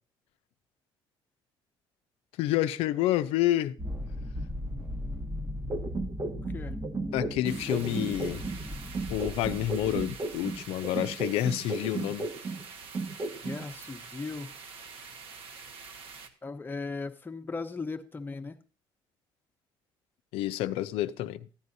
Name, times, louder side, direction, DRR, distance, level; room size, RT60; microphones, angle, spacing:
voice 1, 2.4-3.8 7.1-8.4 9.1-12.3 20.3-21.5, left 13 dB, 80° left, 0.5 m, -29 dB
sound 1, 3.8-10.6, equal, 15° right, 1.0 m, -37 dB
sound 2, 5.7-8.6 8.9-12.6 12.9-13.6, right 3 dB, 35° right, 1.1 m, -34 dB
voice 2, 6.4-6.7 13.4-14.5 16.4-18.6, left 4 dB, 20° left, 0.9 m, -37 dB
sound 3, 7.4-16.3, right 5 dB, 70° right, 1.2 m, -46 dB
14.0 x 9.5 x 2.7 m
cardioid pair, 95°, 10 cm